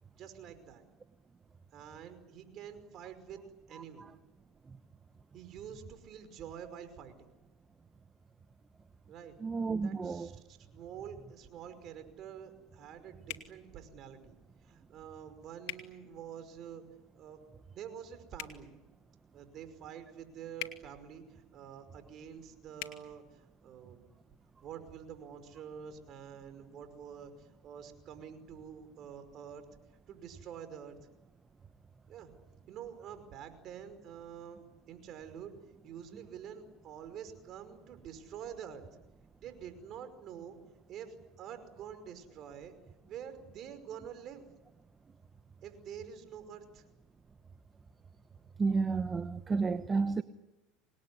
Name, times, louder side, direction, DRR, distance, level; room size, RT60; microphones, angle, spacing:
voice 1, 0.1-0.8 1.7-3.4 3.7-4.1 5.3-7.3 9.1-9.3 9.8-14.4 14.6-16.8 17.2-17.4 17.7-18.7 19.3-24.1 24.6-29.7 30.1-31.0 32.1-32.3 32.7-35.5 35.8-38.8 39.4-40.6 40.9-42.7 43.1-44.5 45.6-46.8, right 8 dB, 50° right, 5.4 m, -47 dB
voice 2, 9.4-10.3 48.6-50.2, right 4 dB, 25° right, 1.0 m, -31 dB
sound 1, 13.3-13.5 15.6-15.8 18.3-18.6 20.6-20.8 22.8-23.0, left 14 dB, 70° left, 2.5 m, -40 dB
27.0 x 20.5 x 9.9 m
supercardioid pair, 100°, 0 cm